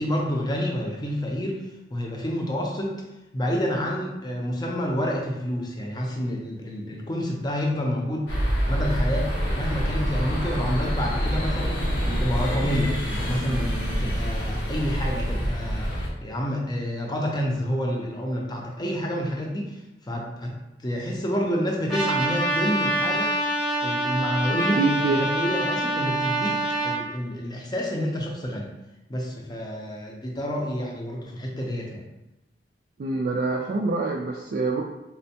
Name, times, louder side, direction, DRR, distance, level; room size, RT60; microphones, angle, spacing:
voice 1, 0.0-1.7 1.9-3.0 3.3-8.3 8.7-11.9 12.2-19.8 20.1-20.5 20.8-23.4 23.8-28.8 29.1-32.1, equal, 25° left, -1 dB, 0.5 m, -28 dB
sound 1, 8.3-16.1, equal, 80° left, 0.8 m, -26 dB
Trumpet, 21.9-27.0, right 1 dB, ahead, 0.8 m, -26 dB
voice 2, 24.5-25.2 33.0-34.8, right 3 dB, 55° right, 0 dB, 0.3 m, -25 dB
4.2 x 2.2 x 2.7 m, 0.94 s
head